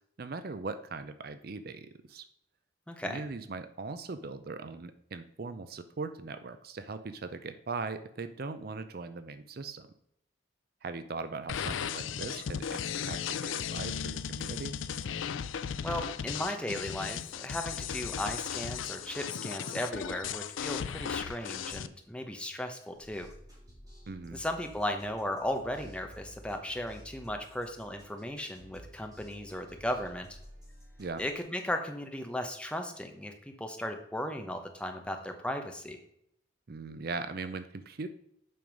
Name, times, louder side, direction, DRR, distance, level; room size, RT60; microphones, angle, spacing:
voice 1, 0.2-2.3 3.0-9.9 10.8-14.7 24.1-24.4 31.0-31.2 36.7-38.1, right 4 dB, 50° right, 11 dB, 0.5 m, -40 dB
voice 2, 2.9-3.2 15.8-23.3 24.3-30.4 31.2-36.0, left 1 dB, 5° left, 5 dB, 0.8 m, -36 dB
sound 1, 11.5-21.9, left 7 dB, 85° left, 0.4 m, -36 dB
sound 2, 22.9-31.4, equal, 20° right, 3.4 m, -53 dB
7.7 x 5.3 x 5.2 m, 0.75 s
head